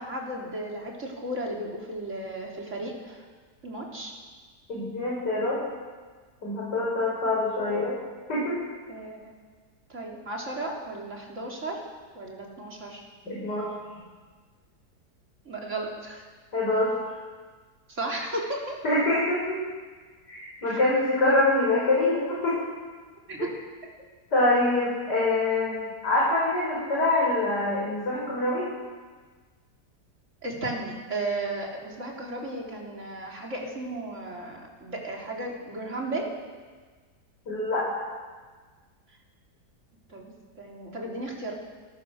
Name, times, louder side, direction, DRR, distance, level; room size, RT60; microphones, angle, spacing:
voice 1, 0.0-3.3 3.6-4.1 8.9-9.3 9.9-11.8 12.2-13.0 15.5-16.2 17.9-18.8 20.6-20.8 23.3-23.6 30.4-36.3 40.1-41.5, right 2 dB, 45° right, -1 dB, 4.0 m, -34 dB
voice 2, 4.7-5.6 6.4-7.9 8.3-8.6 13.2-13.7 16.5-16.9 18.8-19.6 20.3-22.6 24.3-28.7 37.5-37.9, left 2 dB, 80° left, -6 dB, 6.3 m, -25 dB
28.5 x 14.5 x 6.6 m, 1.5 s
omnidirectional pair, 1.8 m